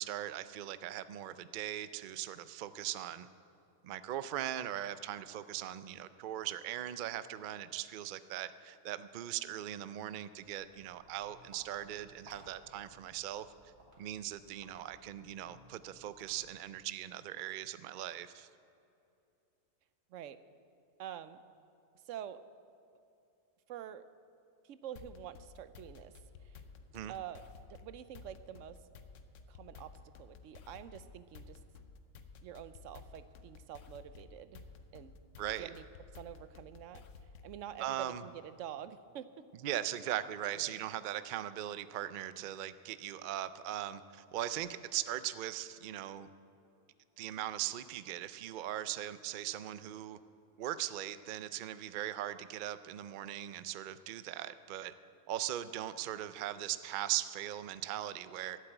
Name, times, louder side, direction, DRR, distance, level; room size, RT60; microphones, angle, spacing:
voice 1, 0.0-3.3 3.8-13.5 14.0-18.5 26.9-27.1 35.4-35.7 37.8-38.2 39.6-46.3 47.2-50.2 50.6-54.9 55.3-58.6, right 12 dB, 90° right, 13 dB, 0.4 m, -39 dB
Walk footsteps, 10.3-16.8, right 1 dB, 50° right, 2.6 m, -62 dB
voice 2, 21.0-21.4 22.0-22.4 23.7-24.0 24.6-26.1 26.4-26.6 27.1-27.4 27.7-28.8 29.5-31.6 32.4-34.6 34.9-35.2 35.6-35.8 36.2-39.4 40.5-40.8, right 10 dB, 70° right, 13 dB, 0.9 m, -47 dB
sound 1, 25.0-37.6, left 4 dB, 70° left, 1.1 m, -54 dB
12.5 x 8.1 x 8.0 m, 2.7 s
omnidirectional pair, 1.4 m